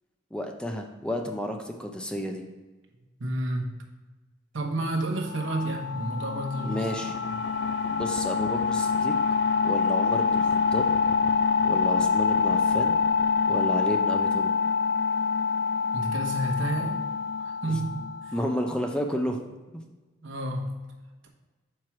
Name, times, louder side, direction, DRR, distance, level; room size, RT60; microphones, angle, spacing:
voice 1, 0.3-2.4 6.6-7.1 7.9-9.1 9.6-10.5 10.7-10.9 11.6-13.0 13.5-14.5 18.3-19.4, equal, 5° left, 3 dB, 0.5 m, -31 dB
voice 2, 3.2-3.8 4.5-6.9 7.3-7.4 15.9-17.0 17.4-18.3 20.2-20.8, right 1 dB, 80° right, 1 dB, 1.0 m, -30 dB
sound 1, 5.3-18.7, left 5 dB, 65° left, 0.3 m, -26 dB
4.7 x 4.5 x 5.9 m, 1.2 s
head